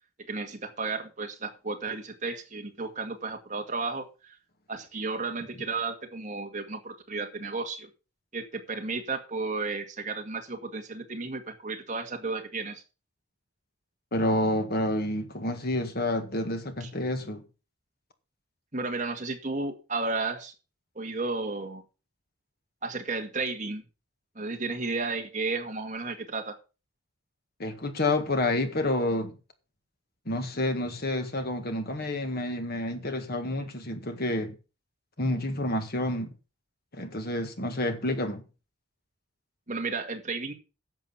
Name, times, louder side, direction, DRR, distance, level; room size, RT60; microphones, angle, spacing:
voice 1, 0.3-4.3 4.7-7.9 8.3-12.8 16.8-16.9 18.7-20.5 21.0-21.8 22.8-23.8 24.4-26.5 39.7-40.5, right 3 dB, 35° right, 2.0 m, -33 dB
voice 2, 14.1-17.4 27.6-29.4 30.3-34.6 35.2-36.3 36.9-38.4, left 1 dB, 45° left, 1.8 m, -29 dB
11.0 x 7.6 x 6.0 m
head